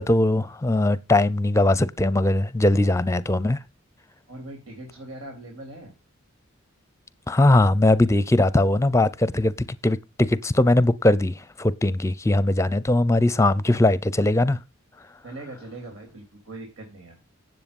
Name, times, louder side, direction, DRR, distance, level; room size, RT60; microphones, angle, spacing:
voice 1, 0.0-3.6 7.3-9.5 9.8-14.6, left 1 dB, 15° left, 0.6 m, -20 dB
voice 2, 4.3-5.9 15.2-17.3, right 2 dB, 85° right, 3.8 m, -40 dB
9.9 x 7.8 x 5.3 m
head